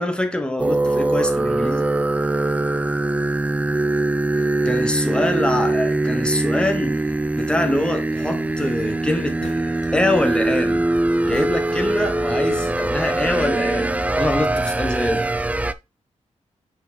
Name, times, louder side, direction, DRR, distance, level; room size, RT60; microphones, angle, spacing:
voice 1, 0.0-1.8 4.3-7.0 7.4-10.9 11.2-15.3, left 1 dB, 10° left, 1.1 m, -24 dB
sound 1, 0.6-15.7, right 2 dB, 10° right, 0.4 m, -22 dB
sound 2, 9.2-10.1 11.1-12.1 12.4-13.2, left 6 dB, 70° left, 1.0 m, -42 dB
5.7 x 4.5 x 4.2 m
wide cardioid pair, 120°, 12 cm